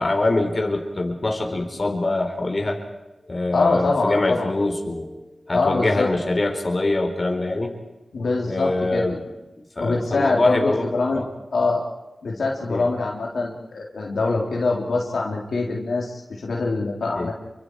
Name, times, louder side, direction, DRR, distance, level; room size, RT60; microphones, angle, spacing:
voice 1, 0.0-2.8 3.3-5.1 5.5-7.8 8.5-9.2 9.8-11.3 12.7-12.8 17.2-17.3, left 2 dB, 45° left, 4 dB, 4.0 m, -24 dB
voice 2, 3.5-4.5 5.5-6.1 8.1-9.1 9.8-11.2 11.5-11.8 12.2-17.3, left 3 dB, 85° left, -2 dB, 3.5 m, -24 dB
28.5 x 24.0 x 4.8 m, 1.0 s
cardioid pair, 50°, 0 cm